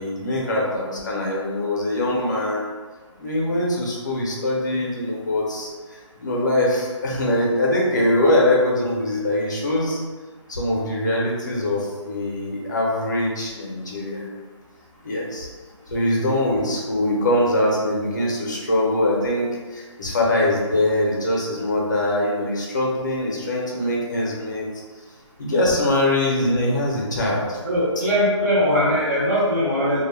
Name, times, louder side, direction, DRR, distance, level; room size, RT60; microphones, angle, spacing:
voice 1, 0.0-2.7 3.2-5.7 6.2-10.0 10.5-14.3 15.0-15.5 15.9-24.7 25.4-27.6, left 1 dB, 35° left, -3 dB, 0.5 m, -22 dB
voice 2, 27.6-30.0, equal, 30° right, -7 dB, 0.7 m, -20 dB
2.1 x 2.1 x 3.1 m, 1.4 s
hypercardioid pair, 170°, 16 cm